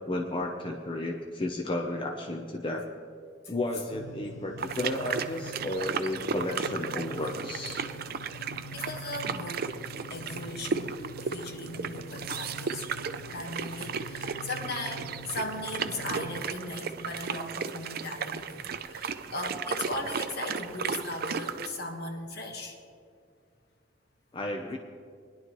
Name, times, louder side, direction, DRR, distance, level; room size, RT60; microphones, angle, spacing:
voice 1, 0.0-2.9 3.5-7.9 24.3-24.8, left 1 dB, 25° left, 1 dB, 0.7 m, -33 dB
sound 1, 3.9-16.4, equal, 80° left, 0.6 m, -45 dB
sound 2, 4.6-21.7, right 6 dB, 55° right, 0.5 m, -35 dB
voice 2, 8.7-9.6 10.1-11.0 11.3-12.9 13.3-22.8, left 2 dB, 60° left, 3 dB, 1.5 m, -37 dB
20.5 x 11.0 x 3.1 m, 2.2 s
head